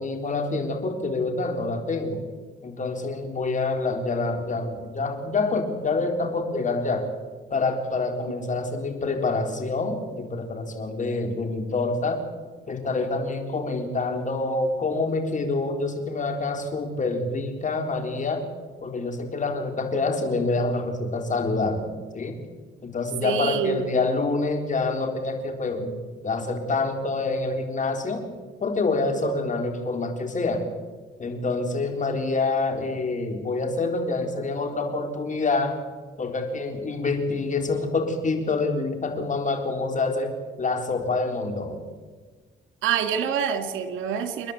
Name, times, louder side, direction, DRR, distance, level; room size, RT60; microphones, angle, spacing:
voice 1, 0.0-2.2 2.6-7.1 7.5-12.2 12.7-18.5 18.8-21.9 22.1-22.4 22.8-26.0 26.2-28.3 28.6-30.6 31.2-35.8 36.2-41.8, left 3 dB, 40° left, 5 dB, 3.9 m, -26 dB
voice 2, 23.2-23.9 42.8-44.5, right 8 dB, 85° right, 9 dB, 2.2 m, -26 dB
28.5 x 11.0 x 8.7 m, 1.4 s
cardioid pair, 90°, 20 cm